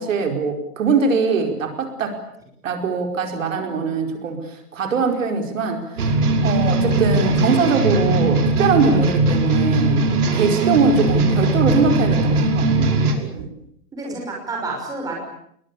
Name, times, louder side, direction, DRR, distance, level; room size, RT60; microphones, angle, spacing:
voice 1, 0.0-2.2 2.6-6.1 6.4-10.0 10.3-13.0, right 4 dB, 55° right, 5 dB, 4.8 m, -22 dB
sound 1, 6.0-13.1, right 2 dB, 70° right, 5.7 m, -19 dB
sound 2, 6.6-7.8 9.9-12.2 12.9-13.5 14.0-14.2, right 7 dB, 25° right, 3.5 m, -34 dB
voice 2, 13.9-15.1, right 3 dB, 10° right, 0 dB, 5.8 m, -30 dB
27.0 x 22.0 x 8.6 m, 0.70 s
hypercardioid pair, 170°, 46 cm